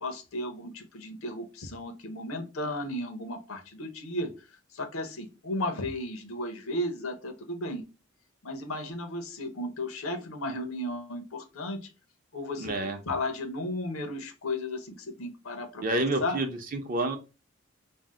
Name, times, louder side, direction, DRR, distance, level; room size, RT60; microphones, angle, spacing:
voice 1, 0.0-4.3 4.7-7.8 8.4-11.8 12.3-12.7 13.1-16.4, left 1 dB, 90° left, 5 dB, 0.7 m, -34 dB
voice 2, 12.6-13.0 15.8-17.2, right 2 dB, 40° right, 6 dB, 0.5 m, -29 dB
2.6 x 2.0 x 3.5 m, 0.29 s
head